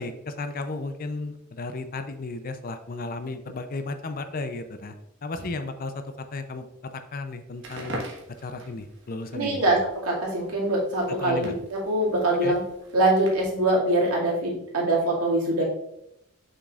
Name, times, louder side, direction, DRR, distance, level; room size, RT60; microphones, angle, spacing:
voice 1, 0.0-4.9 5.2-6.7 6.9-8.0 8.4-9.6 11.1-11.5 12.4-12.6, left 3 dB, 40° left, 9 dB, 0.5 m, -34 dB
Crackle, 7.5-13.7, right 1 dB, 55° right, 1.5 m, -43 dB
voice 2, 9.3-9.8 10.0-12.6 12.9-15.6, right 1 dB, 85° right, -4 dB, 2.2 m, -23 dB
6.5 x 6.3 x 2.4 m, 0.79 s
head